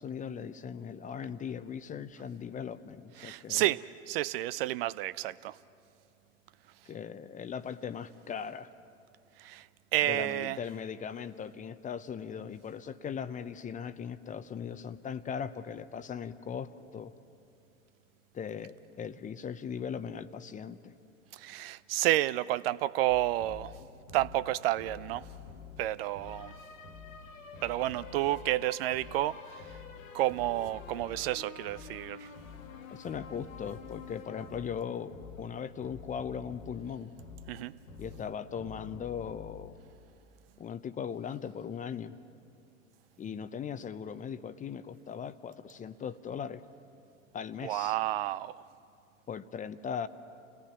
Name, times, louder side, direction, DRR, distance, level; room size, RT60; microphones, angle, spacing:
voice 1, 0.0-3.8 6.9-8.7 10.0-17.1 18.3-20.9 32.9-37.1 38.0-39.8 40.6-42.1 43.2-46.6 47.3-47.9 49.3-50.1, left 7 dB, 20° left, 13 dB, 0.7 m, -39 dB
voice 2, 3.2-5.6 9.4-9.7 9.9-10.6 21.3-23.8 24.1-25.2 25.8-26.5 27.6-29.8 30.1-32.3 37.5-37.7 47.6-48.6, right 15 dB, 50° right, 17 dB, 0.4 m, -30 dB
sound 1, 23.1-40.7, left 6 dB, 75° left, 1.5 m, -48 dB
29.5 x 18.0 x 6.0 m, 2.5 s
figure-of-eight pair, 85°, 40 cm